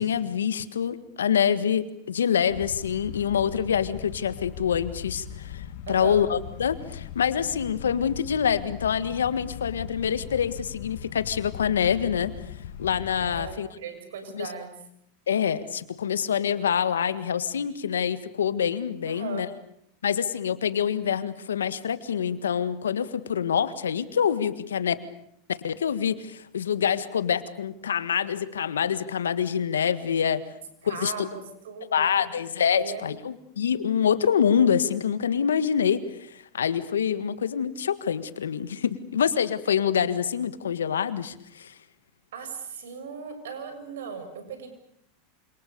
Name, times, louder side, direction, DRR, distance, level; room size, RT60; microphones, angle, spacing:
voice 1, 0.0-12.3 12.8-13.7 14.3-14.5 15.3-19.5 20.0-24.9 25.5-30.4 30.8-31.3 31.9-41.7, left 8 dB, 85° left, 13 dB, 1.7 m, -26 dB
sound 1, 2.5-13.6, left 10 dB, 65° left, 1.9 m, -40 dB
voice 2, 5.9-6.2 13.2-14.7 19.1-19.5 30.8-32.3 32.7-33.1 42.3-44.7, right 6 dB, 75° right, 8 dB, 6.9 m, -37 dB
28.5 x 27.0 x 6.9 m, 0.72 s
hypercardioid pair, 100°, 0 cm